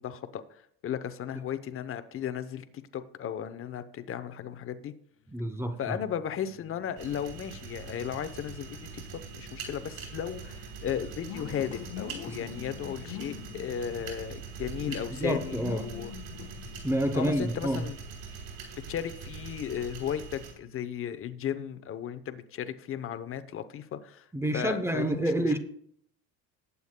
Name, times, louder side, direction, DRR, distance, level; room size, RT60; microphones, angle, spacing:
voice 1, 0.0-2.6 2.9-4.9 5.8-16.1 17.1-18.0 18.3-18.4 18.9-24.3 24.5-25.6, left 9 dB, 30° left, 0.7 m, -35 dB
sound 1, 5.3-18.7, left 9 dB, 70° left, 1.3 m, -47 dB
voice 2, 5.3-6.0 12.3-12.4 15.1-15.9 16.8-17.9 24.3-25.6, right 1 dB, 5° right, 0.7 m, -29 dB
sound 2, 7.0-20.5, right 5 dB, 55° right, 3.4 m, -43 dB
19.5 x 8.2 x 2.2 m
cardioid pair, 125°, 44 cm